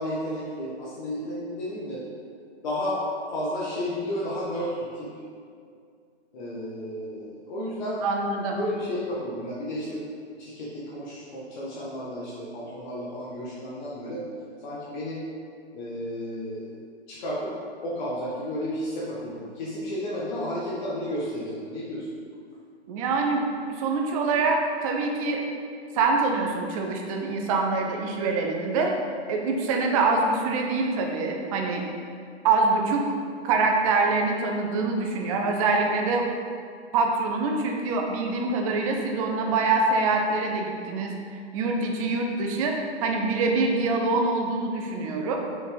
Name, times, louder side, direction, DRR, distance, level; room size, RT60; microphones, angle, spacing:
voice 1, 0.0-2.0 2.6-3.0 3.3-5.1 6.3-8.0 8.5-10.0 10.4-14.2 14.6-15.3 15.7-16.8 17.1-17.5 17.8-22.1, equal, 45° left, -7 dB, 1.7 m, -32 dB
voice 2, 8.0-8.6 22.9-23.5 23.8-25.4 25.9-29.0 29.3-31.8 32.4-33.1 33.4-36.3 36.9-41.1 41.5-42.7 43.0-45.4, right 3 dB, 30° right, 2 dB, 1.0 m, -25 dB
6.4 x 6.2 x 5.3 m, 2.3 s
figure-of-eight pair, 120°, 34 cm